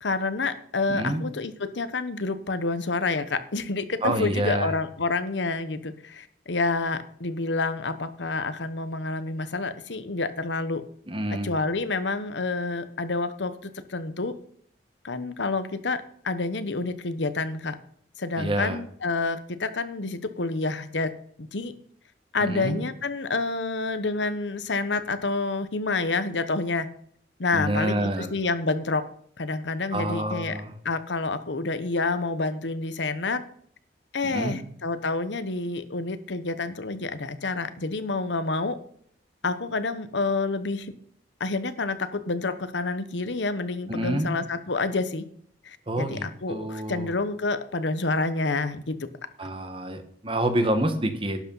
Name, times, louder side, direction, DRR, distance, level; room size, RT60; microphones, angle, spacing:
voice 1, 0.0-10.8 11.3-14.3 15.0-17.8 18.2-21.1 21.4-21.7 22.3-26.9 27.4-29.0 29.4-30.6 30.8-33.4 34.1-38.8 39.4-40.9 41.4-45.2 45.6-49.0, left 3 dB, 80° left, 12 dB, 1.0 m, -28 dB
voice 2, 0.9-1.2 4.0-4.7 11.1-11.5 18.4-18.8 22.4-22.8 27.5-28.3 29.9-30.7 34.2-34.6 43.9-44.3 45.9-47.1 49.4-51.4, right 1 dB, 30° right, 8 dB, 1.4 m, -27 dB
12.0 x 8.3 x 5.6 m, 0.63 s
head